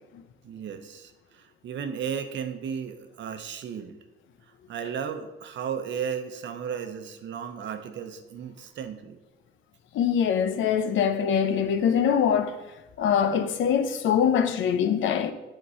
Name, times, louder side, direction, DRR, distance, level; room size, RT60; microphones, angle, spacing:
voice 1, 0.4-4.0 4.7-9.2, right 7 dB, 65° right, 0.9 m, -34 dB
voice 2, 9.9-12.6 13.0-15.3, left 8 dB, 80° left, 0.7 m, -23 dB
8.1 x 3.8 x 5.5 m
cardioid pair, 90°, 20 cm